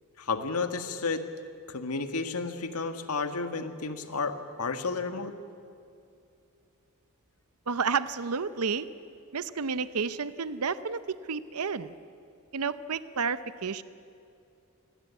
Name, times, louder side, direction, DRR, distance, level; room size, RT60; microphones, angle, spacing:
voice 1, 0.2-1.2 1.7-5.3, left 4 dB, 90° left, 8 dB, 1.8 m, -32 dB
voice 2, 7.7-8.9 9.3-11.9 12.5-13.8, right 5 dB, 80° right, 14 dB, 0.8 m, -31 dB
27.0 x 21.5 x 8.3 m, 2.5 s
head